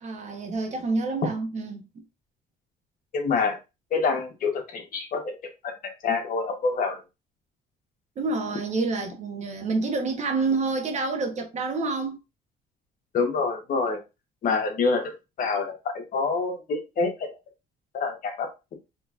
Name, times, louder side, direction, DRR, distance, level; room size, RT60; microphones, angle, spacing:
voice 1, 0.0-2.0 8.2-12.2, right 3 dB, 45° right, 1.0 m, -28 dB
voice 2, 3.1-3.6 3.9-5.4 5.6-7.0 13.1-14.0 14.4-15.1 15.4-17.3 17.9-18.5, left 4 dB, 55° left, 1.1 m, -26 dB
4.3 x 3.1 x 2.4 m
cardioid pair, 110°, 17 cm